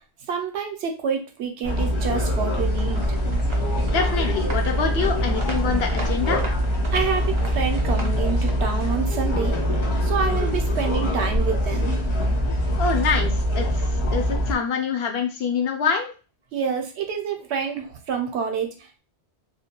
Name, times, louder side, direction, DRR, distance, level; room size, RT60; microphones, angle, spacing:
voice 1, 0.3-3.2 6.9-9.6 10.0-12.0 16.5-19.0, right 6 dB, 75° right, 4 dB, 0.9 m, -28 dB
sound 1, 1.6-14.5, equal, 40° left, 0.5 m, -23 dB
sound 2, 2.6-8.5, right 2 dB, 35° right, 0.5 m, -34 dB
voice 2, 3.9-6.4 12.8-16.1, left 5 dB, 70° left, 4 dB, 0.8 m, -25 dB
2.3 x 2.2 x 2.8 m, 0.33 s
omnidirectional pair, 1.1 m